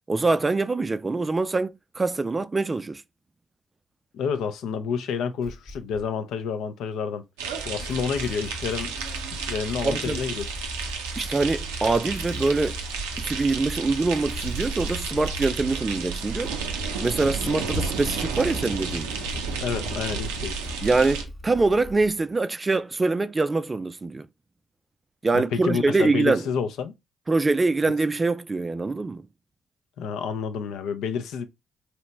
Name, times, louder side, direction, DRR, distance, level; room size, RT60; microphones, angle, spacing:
voice 1, 0.1-3.0 9.8-10.2 11.2-12.8 13.2-16.5 17.0-19.1 20.8-24.3 25.2-26.4 27.3-29.2, right 3 dB, 30° right, 0.3 m, -24 dB
voice 2, 4.1-7.2 7.6-8.9 9.3-10.5 19.6-20.6 25.3-26.9 30.0-31.4, left 6 dB, 75° left, 0.4 m, -29 dB
Motorcycle / Engine starting, 5.4-6.1 7.4-22.3, left 1 dB, 35° left, 0.7 m, -39 dB
sound 1, 7.4-21.2, right 5 dB, 90° right, 0.4 m, -32 dB
2.8 x 2.0 x 3.2 m
hypercardioid pair, 50°, 0 cm